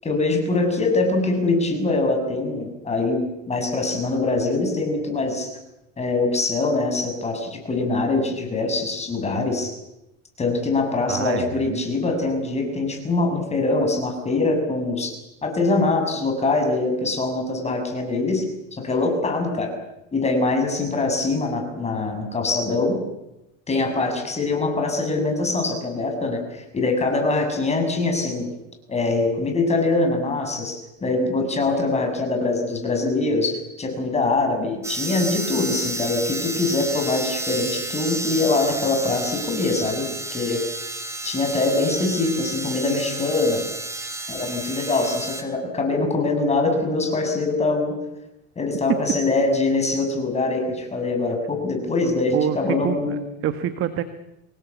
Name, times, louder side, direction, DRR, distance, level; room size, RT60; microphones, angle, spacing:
voice 1, 0.0-5.5 6.0-9.7 10.4-15.1 15.4-18.4 18.7-19.7 20.1-23.0 23.7-28.5 28.9-40.1 40.3-40.6 41.2-43.6 44.3-47.9 48.5-53.2, left 3 dB, 20° left, 4 dB, 6.8 m, -23 dB
voice 2, 11.1-11.8 52.3-54.0, right 10 dB, 40° right, 10 dB, 1.6 m, -27 dB
sound 1, 34.8-45.4, right 2 dB, 10° right, 3.2 m, -31 dB
25.5 x 19.0 x 8.3 m, 0.90 s
supercardioid pair, 120°, 34 cm